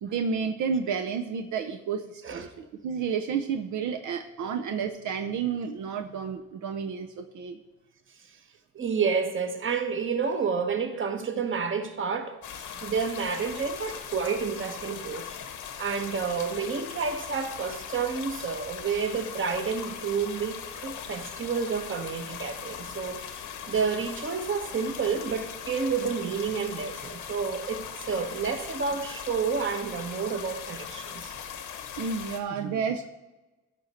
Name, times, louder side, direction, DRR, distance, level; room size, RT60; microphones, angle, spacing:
voice 1, 0.0-7.6 12.7-12.8 32.0-33.1, right 6 dB, 75° right, 0.7 m, -31 dB
voice 2, 8.7-15.4 15.8-23.3 23.7-31.3, right 5 dB, 40° right, 1.2 m, -30 dB
sound 1, 12.4-32.4, left 8 dB, 85° left, 1.1 m, -40 dB
14.0 x 5.2 x 4.3 m
cardioid pair, 90°, 30 cm